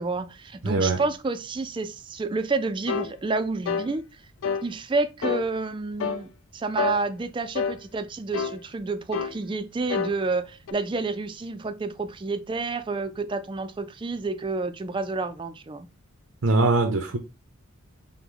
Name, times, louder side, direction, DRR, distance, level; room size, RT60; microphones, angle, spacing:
voice 1, 0.0-4.0 4.6-15.9, right 3 dB, 25° right, 0.3 m, -29 dB
voice 2, 0.6-1.0 16.4-17.2, right 3 dB, 90° right, 0.6 m, -22 dB
sound 1, 2.9-3.1 3.6-3.9 4.4-4.7 5.2-5.5 6.0-6.2 6.8-7.0 7.5-7.8 8.3-8.6 9.1-9.4 9.9-10.1 10.7-10.8, left 6 dB, 75° left, 0.4 m, -28 dB
5.8 x 2.1 x 3.7 m
head